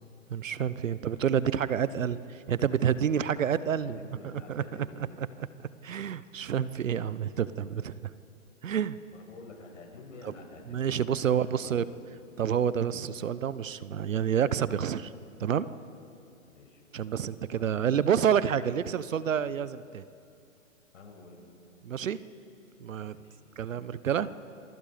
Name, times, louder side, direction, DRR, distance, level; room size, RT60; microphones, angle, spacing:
voice 1, 0.3-4.0 4.5-4.6 5.8-8.1 8.6-9.0 10.2-10.3 10.7-11.8 12.4-15.1 15.4-15.7 16.9-20.0 21.8-22.2 22.8-23.1 23.6-24.3, right 8 dB, 70° right, 16 dB, 1.1 m, -28 dB
voice 2, 3.0-5.1 9.1-12.0 16.4-16.8 17.5-17.9 20.9-21.4 23.0-23.4, left 3 dB, 65° left, 2 dB, 6.6 m, -49 dB
28.0 x 23.5 x 5.2 m, 2.6 s
hypercardioid pair, 135°, 40 cm